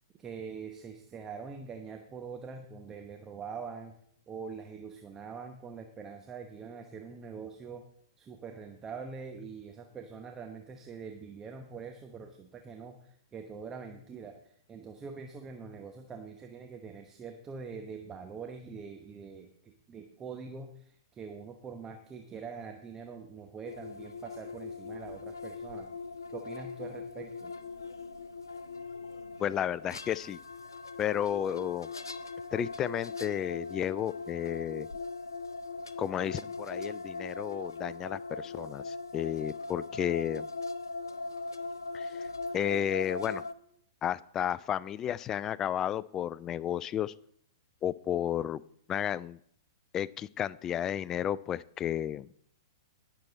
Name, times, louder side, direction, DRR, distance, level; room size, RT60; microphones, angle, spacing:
voice 1, 0.2-3.9 4.3-7.8 8.2-25.9 26.3-27.5, right 5 dB, 20° right, 5 dB, 1.0 m, -44 dB
sound 1, 23.6-43.5, left 3 dB, 80° left, 0.7 m, -40 dB
voice 2, 29.4-30.4 31.0-31.9 32.5-34.9 36.0-40.5 41.9-42.3 42.5-43.4 44.0-47.1 47.8-48.6 48.9-49.4 49.9-52.3, left 10 dB, 25° left, 21 dB, 0.3 m, -32 dB
18.5 x 6.9 x 4.1 m, 0.68 s
figure-of-eight pair, 105°, 2 cm